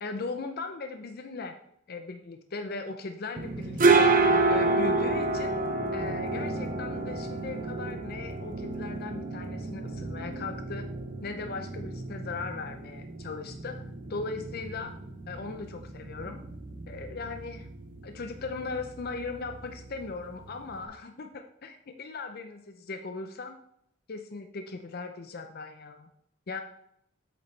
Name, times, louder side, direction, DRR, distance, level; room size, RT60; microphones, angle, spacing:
voice 1, 0.0-1.5 1.9-5.5 5.9-10.9 11.2-13.8 14.1-14.9 15.3-16.4 16.9-17.7 18.0-23.6 24.1-26.1 26.5-26.6, left 3 dB, 50° left, 6 dB, 0.6 m, -38 dB
sound 1, 3.4-20.8, right 3 dB, 45° right, 0.8 m, -30 dB
8.2 x 7.1 x 3.3 m, 0.74 s
head